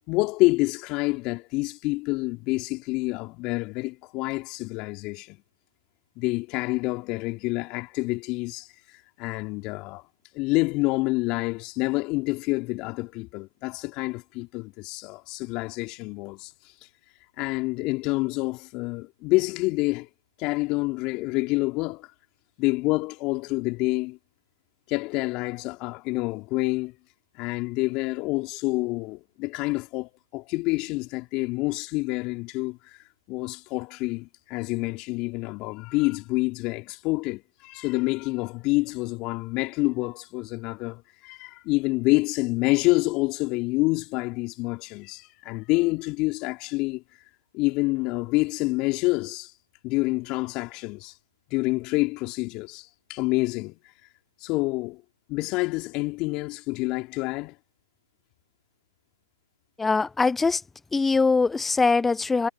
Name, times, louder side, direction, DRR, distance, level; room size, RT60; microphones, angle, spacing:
voice 1, 0.1-5.4 6.2-10.0 10.3-16.5 17.4-20.1 20.4-22.1 22.6-24.2 24.9-26.9 27.4-47.0 47.5-49.5 49.8-51.1 51.5-53.8 54.4-55.0 55.3-57.6, left 23 dB, 30° left, 3.6 m, -27 dB
voice 2, 59.8-60.6 60.9-62.5, left 4 dB, 5° left, 0.6 m, -22 dB
figure-of-eight pair, 130°, 2 cm